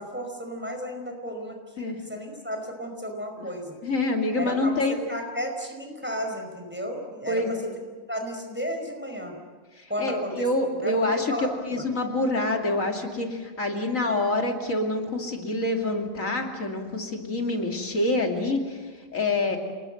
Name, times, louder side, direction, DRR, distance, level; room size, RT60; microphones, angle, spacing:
voice 1, 0.0-3.7 4.4-7.4 8.1-9.3 9.9-10.4 10.8-11.0 11.3-11.9 19.4-19.6, equal, 10° right, 3 dB, 5.0 m, -33 dB
voice 2, 3.8-5.0 7.2-7.7 9.7-19.6, left 2 dB, 90° left, 2 dB, 3.1 m, -27 dB
28.5 x 20.0 x 7.9 m, 1.4 s
omnidirectional pair, 1.3 m